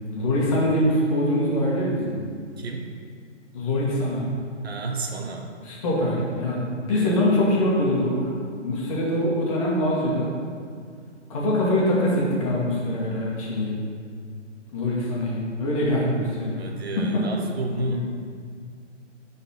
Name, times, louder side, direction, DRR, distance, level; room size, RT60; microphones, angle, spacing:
voice 1, 0.1-2.2 3.5-4.2 5.7-8.2 8.6-10.3 11.3-13.7 14.7-16.6 17.8-18.0, left 1 dB, 30° left, -5 dB, 1.6 m, -23 dB
voice 2, 2.6-2.9 4.6-5.5 6.9-7.2 16.6-18.0, right 3 dB, 55° right, 3 dB, 0.9 m, -32 dB
11.0 x 4.1 x 4.3 m, 2.1 s
figure-of-eight pair, 145°, 37 cm